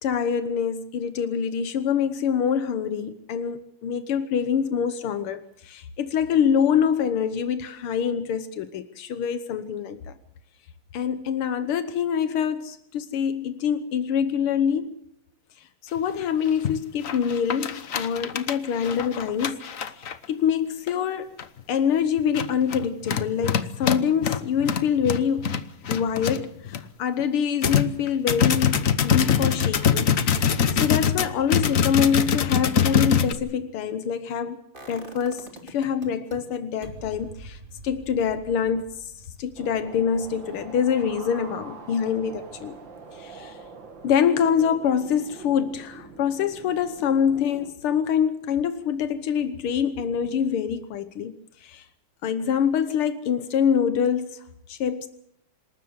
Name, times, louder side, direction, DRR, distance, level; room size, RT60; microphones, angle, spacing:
voice 1, 0.0-10.2 10.9-15.0 15.9-19.6 19.9-21.3 21.7-25.6 25.9-30.1 30.5-34.6 34.9-39.1 39.4-42.8 43.1-43.6 44.0-51.3 51.6-51.9 52.2-55.1, left 7 dB, 85° left, 2.0 m, -25 dB
sound 1, 16.0-16.1 16.5-16.8 17.0-20.3 20.9-21.0 21.4-21.6 22.2-26.8 27.2-27.3 27.6-33.3, left 7 dB, 45° left, 1.2 m, -23 dB
sound 2, 34.7-36.4 36.8-42.7 43.0-43.1, right 2 dB, 25° right, 2.8 m, -46 dB
sound 3, 39.6-47.7, right 5 dB, 60° right, 2.9 m, -44 dB
26.5 x 13.5 x 8.0 m
omnidirectional pair, 2.3 m